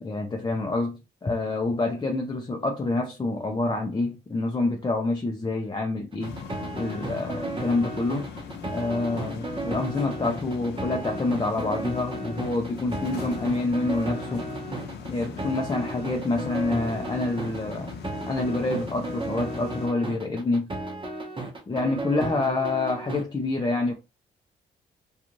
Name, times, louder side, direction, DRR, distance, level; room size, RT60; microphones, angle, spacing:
voice 1, 0.0-6.3 6.7-8.3 8.7-14.5 15.1-17.9 18.3-20.7 21.7-23.9, left 2 dB, 25° left, 0.6 m, -27 dB
sound 1, 6.1-23.2, right 2 dB, 30° right, 0.9 m, -34 dB
sound 2, 6.2-19.9, left 5 dB, 90° left, 0.6 m, -39 dB
2.5 x 2.4 x 2.9 m
cardioid pair, 65°, 17 cm